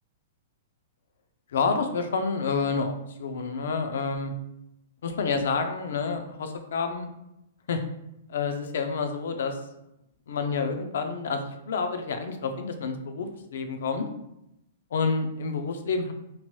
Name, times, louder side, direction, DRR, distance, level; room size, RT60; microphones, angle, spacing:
voice 1, 1.5-2.9 3.2-4.3 5.0-7.1 7.7-7.8 8.3-9.6 10.3-14.1 14.9-16.1, left 4 dB, 75° left, 7 dB, 0.4 m, -28 dB
2.8 x 2.2 x 3.1 m, 0.84 s
hypercardioid pair, 160°, 0 cm